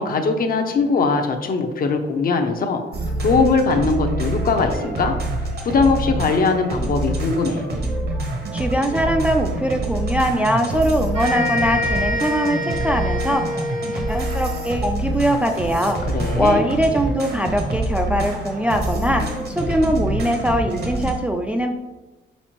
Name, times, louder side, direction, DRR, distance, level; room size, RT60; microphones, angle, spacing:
voice 1, 0.0-2.8 3.2-5.1 5.6-7.7 16.1-16.6, left 4 dB, 50° left, 5 dB, 0.6 m, -20 dB
sound 1, 2.9-21.1, right 2 dB, 55° right, 1.1 m, -26 dB
voice 2, 8.5-13.5 13.9-16.0 16.4-21.7, equal, 5° right, 3 dB, 0.3 m, -21 dB
sound 2, 11.1-14.8, left 1 dB, 80° right, 1.4 m, -26 dB
4.2 x 4.1 x 3.0 m, 1.1 s
cardioid pair, 90°, 20 cm